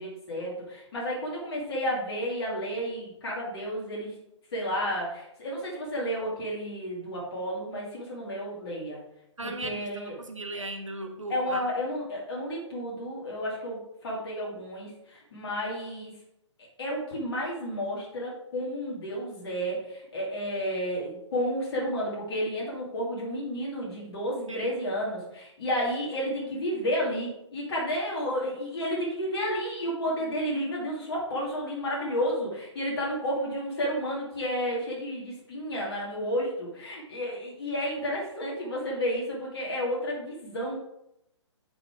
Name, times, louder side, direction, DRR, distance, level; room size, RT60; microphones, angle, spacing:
voice 1, 0.0-4.1 4.5-9.0 9.4-10.2 10.5-10.6 11.3-16.1 16.8-40.8, equal, 50° left, -3 dB, 2.3 m, -31 dB
voice 2, 9.4-11.6 24.5-24.7, right 2 dB, 80° right, 5 dB, 1.1 m, -37 dB
8.8 x 5.0 x 3.5 m, 0.82 s
figure-of-eight pair, 125°, 16 cm